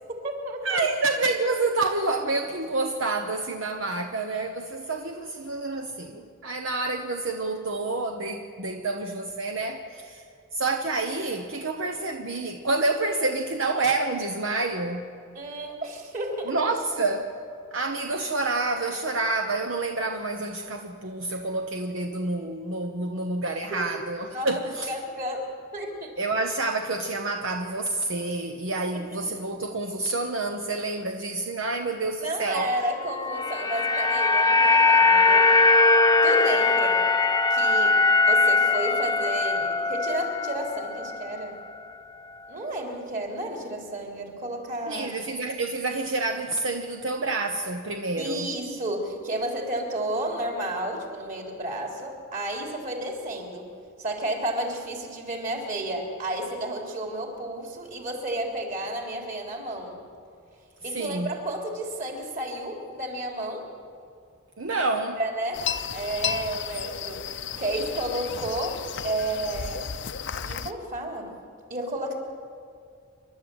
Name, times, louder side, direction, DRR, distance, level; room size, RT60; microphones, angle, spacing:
voice 1, 0.1-0.8 15.3-16.6 21.3-21.4 24.3-24.5 24.9-26.2 28.9-29.0 32.2-35.7 36.2-37.1 37.5-41.6 42.5-45.3 48.2-53.7 54.0-60.0 60.8-63.7 64.7-67.3 67.6-69.9 70.4-71.3 71.7-72.1, right 1 dB, 40° right, 0 dB, 3.6 m, -32 dB
voice 2, 0.6-10.2 10.5-15.1 16.5-17.3 17.7-24.9 26.2-32.7 44.9-48.5 60.9-61.3 64.6-65.2, right 3 dB, 70° right, 4 dB, 1.1 m, -28 dB
sound 1, 33.2-41.5 41.7-41.9, left 3 dB, 20° left, 0.7 m, -21 dB
sound 2, 65.5-70.7, left 8 dB, 60° left, 0.7 m, -33 dB
28.5 x 12.0 x 8.1 m, 2.3 s
head